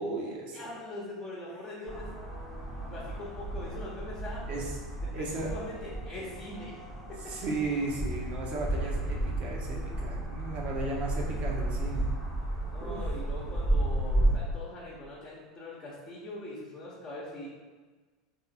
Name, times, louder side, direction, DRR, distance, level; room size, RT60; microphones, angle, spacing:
voice 1, 0.0-0.7 4.5-4.8 5.1-5.5 7.3-12.1 12.8-13.0, right 3 dB, 45° right, -2 dB, 1.1 m, -35 dB
voice 2, 0.5-2.1 2.8-4.4 5.0-6.8 7.1-7.3 12.7-17.5, left 2 dB, 25° left, -5 dB, 1.0 m, -42 dB
sound 1, 1.9-14.3, right 1 dB, 5° right, 1.1 m, -33 dB
3.7 x 2.8 x 4.2 m, 1.4 s
figure-of-eight pair, 80°, 3 cm